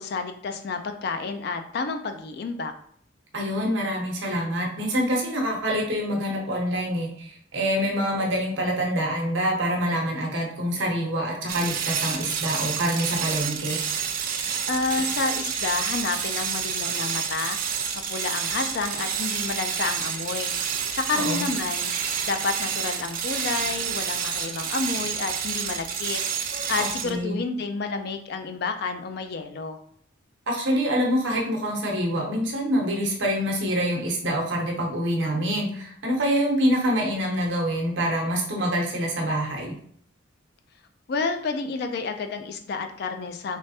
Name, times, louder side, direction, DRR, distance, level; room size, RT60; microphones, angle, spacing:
voice 1, 0.0-2.7 14.7-17.6 18.1-20.5 20.9-21.9 22.2-26.2 26.5-29.8 41.1-43.6, left 4 dB, 50° left, 7 dB, 0.4 m, -30 dB
voice 2, 3.3-13.8 21.1-21.4 26.8-27.4 30.5-39.8, equal, 65° right, 0 dB, 0.9 m, -26 dB
sound 1, 11.5-27.2, right 7 dB, 45° right, 0.4 m, -29 dB
3.3 x 3.2 x 2.7 m, 0.64 s
head